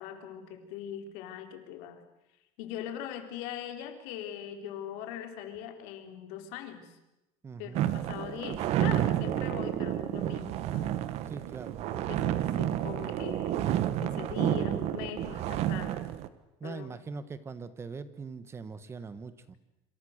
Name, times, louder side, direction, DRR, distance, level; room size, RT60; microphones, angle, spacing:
voice 1, 0.0-2.0 2.6-6.9 7.6-11.0 12.1-13.7 14.0-16.0 16.6-16.9, left 9 dB, 75° left, 5 dB, 3.9 m, -41 dB
voice 2, 7.4-7.9 11.3-11.8 16.6-19.6, right 4 dB, 20° right, 13 dB, 1.4 m, -42 dB
sound 1, 7.7-16.3, right 12 dB, 50° right, 1.5 m, -30 dB
27.0 x 27.0 x 6.6 m, 0.96 s
cardioid pair, 160°, 14 cm